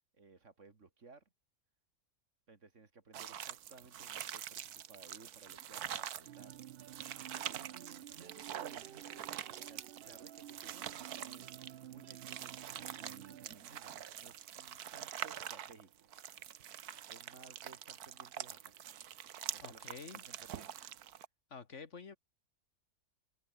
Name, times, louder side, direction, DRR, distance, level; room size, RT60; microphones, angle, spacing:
voice 1, 0.1-1.2 2.5-6.6 7.3-11.5 11.9-16.3 17.1-19.0 19.5-19.8 20.1-20.8, right 4 dB, 55° right, 2.6 m, -59 dB
sound 1, 3.1-21.2, right 10 dB, 90° right, 1.5 m, -45 dB
sound 2, 6.2-13.5, right 11 dB, 70° right, 0.5 m, -53 dB
voice 2, 19.6-20.2 21.5-22.2, left 5 dB, 55° left, 1.8 m, -49 dB
omnidirectional pair, 1.6 m